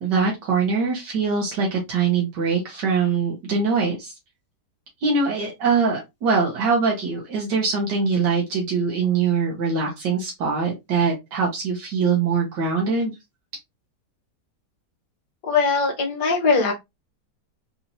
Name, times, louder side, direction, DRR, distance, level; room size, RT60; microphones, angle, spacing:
voice 1, 0.0-4.1 5.0-13.1, right 5 dB, 75° right, 1.6 m, -23 dB
voice 2, 15.5-16.7, left 4 dB, 70° left, 1.5 m, -20 dB
4.3 x 2.9 x 2.5 m
omnidirectional pair, 1.9 m